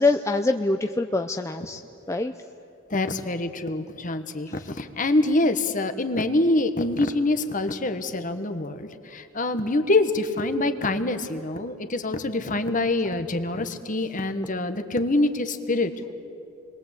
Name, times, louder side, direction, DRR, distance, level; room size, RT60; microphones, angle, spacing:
voice 1, 0.0-1.8 2.1-2.3 4.5-4.6, left 3 dB, 15° left, 6 dB, 0.6 m, -24 dB
voice 2, 2.9-16.1, left 2 dB, 40° left, 8 dB, 1.4 m, -25 dB
29.0 x 22.0 x 8.4 m, 2.7 s
head